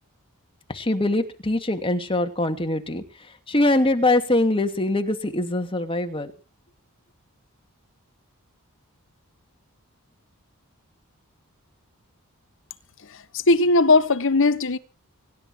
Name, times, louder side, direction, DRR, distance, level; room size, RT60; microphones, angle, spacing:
voice 1, 0.7-3.0 3.5-6.3, left 2 dB, 25° left, 2.5 m, -23 dB
voice 2, 13.0-14.8, left 3 dB, 60° left, 1.3 m, -19 dB
24.5 x 12.0 x 4.6 m
head